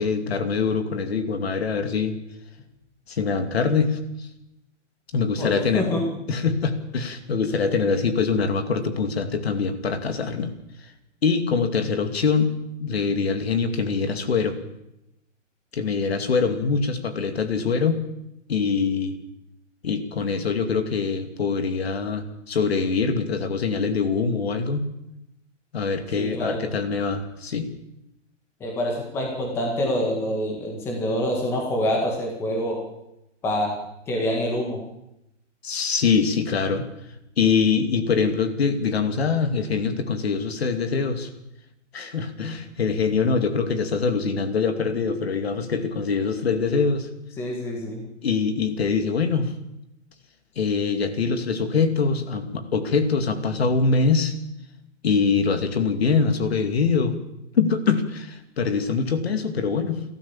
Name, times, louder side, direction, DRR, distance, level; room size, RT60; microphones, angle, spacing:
voice 1, 0.0-2.1 3.1-4.3 5.1-5.9 6.3-10.5 11.2-14.6 15.7-18.0 18.5-19.2 19.8-24.9 25.7-27.7 35.6-36.9 37.4-41.3 41.9-47.1 48.2-49.5 50.6-54.3 55.0-57.2 57.5-60.0, left 5 dB, 55° left, 8 dB, 2.6 m, -23 dB
voice 2, 5.4-6.0 26.2-26.6 28.6-32.8 33.4-33.7 34.1-34.8 47.4-48.0, left 1 dB, 5° left, 0 dB, 1.7 m, -26 dB
29.0 x 13.0 x 7.3 m, 0.87 s
hypercardioid pair, 175°, 38 cm